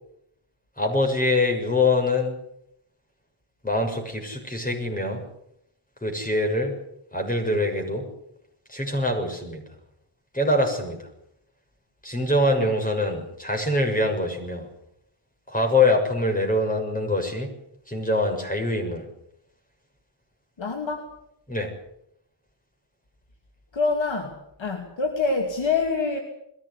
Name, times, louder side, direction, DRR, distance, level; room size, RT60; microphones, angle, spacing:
voice 1, 0.8-2.4 3.6-5.2 6.0-6.7 7.1-8.1 8.7-9.6 10.3-11.0 12.0-14.7 15.5-17.5 17.9-19.0 21.5-21.7, left 2 dB, 15° left, 3 dB, 6.8 m, -24 dB
voice 2, 20.6-21.1 23.7-26.2, left 4 dB, 70° left, 3 dB, 2.9 m, -26 dB
21.5 x 16.0 x 9.9 m, 0.76 s
wide cardioid pair, 95°, 47 cm